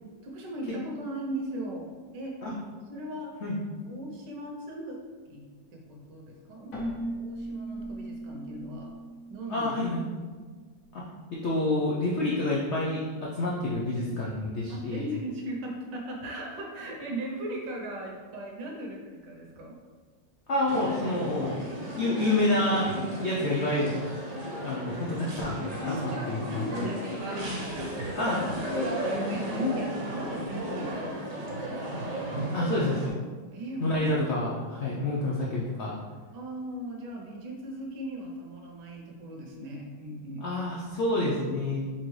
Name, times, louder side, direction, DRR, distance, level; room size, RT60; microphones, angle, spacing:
voice 1, 0.2-2.5 2.9-3.3 3.8-6.7 7.2-8.9 9.3-9.8 14.7-19.8 26.2-26.4 26.6-31.9 33.5-34.2 36.3-40.4, right 1 dB, 70° right, 0 dB, 1.4 m, -39 dB
Keyboard (musical), 6.7-10.3, right 1 dB, 55° left, 1.2 m, -38 dB
voice 2, 9.5-10.0 11.4-15.1 20.5-21.6 21.9-22.9 23.2-23.9 24.6-26.6 28.2-28.4 32.5-33.0 33.8-36.0 40.4-41.8, left 1 dB, 80° left, -5 dB, 0.6 m, -28 dB
sound 1, 20.7-33.1, equal, 55° right, 1.0 m, -33 dB
4.3 x 3.8 x 3.2 m, 1.5 s
omnidirectional pair, 2.0 m